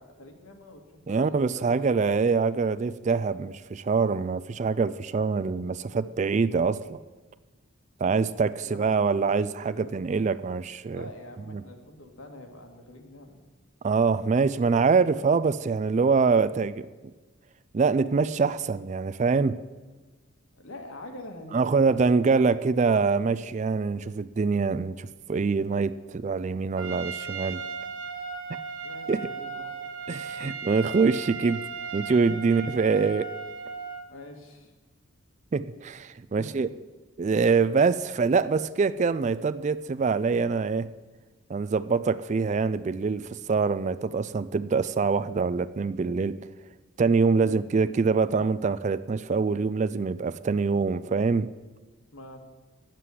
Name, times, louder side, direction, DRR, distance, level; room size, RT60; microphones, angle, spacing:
voice 1, 0.0-1.9 8.6-8.8 9.6-9.9 10.9-13.4 20.6-22.1 28.8-29.7 30.4-30.5 34.1-34.7 36.4-36.5 47.3-47.6 52.1-52.4, left 1 dB, 75° left, 3 dB, 1.7 m, -45 dB
voice 2, 1.1-7.0 8.0-11.0 11.5-11.6 13.8-16.9 17.7-19.6 21.5-27.6 29.1-29.3 30.1-31.7 31.9-33.3 35.5-36.7 37.2-40.9 41.5-46.4 47.0-51.5, right 4 dB, 35° right, 15 dB, 0.3 m, -24 dB
Trumpet, 26.8-34.1, right 5 dB, 65° right, 1.2 m, -36 dB
9.4 x 7.5 x 8.3 m, 1.3 s
head